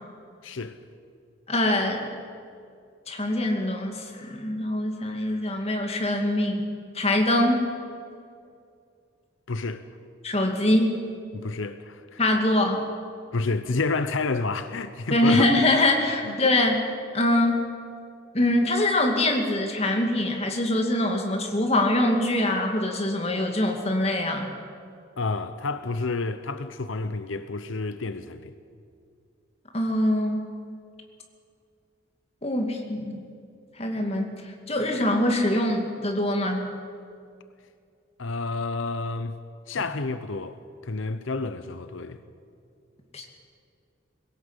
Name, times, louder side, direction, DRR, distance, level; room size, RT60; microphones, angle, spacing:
voice 1, 0.4-0.8 9.5-9.8 11.3-12.2 13.3-15.5 16.2-16.4 25.2-28.5 38.2-39.4 39.7-40.6 40.8-42.2, left 3 dB, 90° left, 0.8 m, -29 dB
voice 2, 1.5-2.0 3.1-6.7 6.9-7.6 10.2-11.0 12.2-12.9 15.1-16.8 17.1-17.6 18.3-24.5 29.7-30.5 32.4-33.2 33.8-34.3 34.7-36.6 43.1-43.3, left 1 dB, 30° left, 2.4 m, -23 dB
21.0 x 17.5 x 8.2 m
head